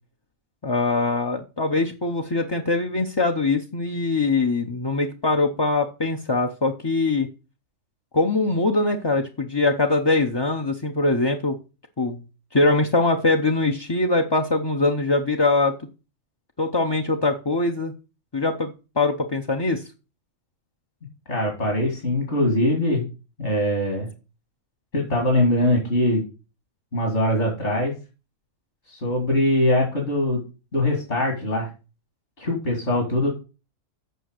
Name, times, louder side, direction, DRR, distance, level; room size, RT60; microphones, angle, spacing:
voice 1, 0.6-7.3 8.1-11.6 12.0-12.2 12.5-15.7 16.6-17.9 18.3-19.8, left 3 dB, 30° left, 3 dB, 0.5 m, -22 dB
voice 2, 21.3-23.1 23.4-24.1 24.9-26.2 26.9-27.9 28.9-30.4 30.7-31.7 32.4-33.3, left 1 dB, 55° left, 0 dB, 2.9 m, -22 dB
7.9 x 5.7 x 6.5 m, 0.32 s
omnidirectional pair, 1.4 m